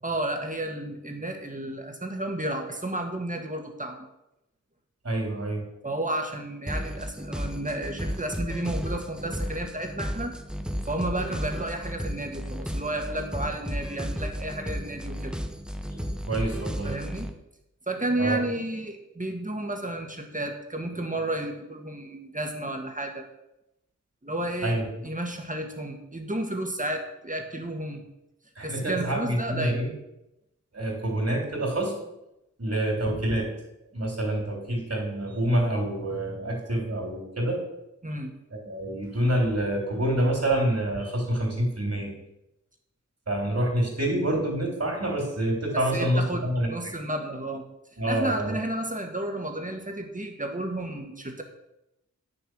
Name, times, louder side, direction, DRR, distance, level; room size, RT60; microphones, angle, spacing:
voice 1, 0.0-4.0 5.8-10.3 10.9-15.3 16.8-17.3 17.9-23.3 24.2-28.0 28.6-29.8 38.0-38.3 45.7-47.6 48.1-51.4, right 1 dB, 25° right, 3 dB, 1.8 m, -32 dB
voice 2, 5.0-5.6 15.9-16.0 16.3-17.0 18.2-18.4 24.6-24.8 28.6-29.9 30.7-32.0 32.6-33.5 33.9-37.6 38.5-42.1 43.3-46.9 48.0-48.6, right 1 dB, 55° right, -1 dB, 3.6 m, -27 dB
sound 1, 6.7-17.3, equal, 5° right, 0.9 m, -33 dB
9.6 x 6.8 x 6.2 m, 0.89 s
wide cardioid pair, 70°, 31 cm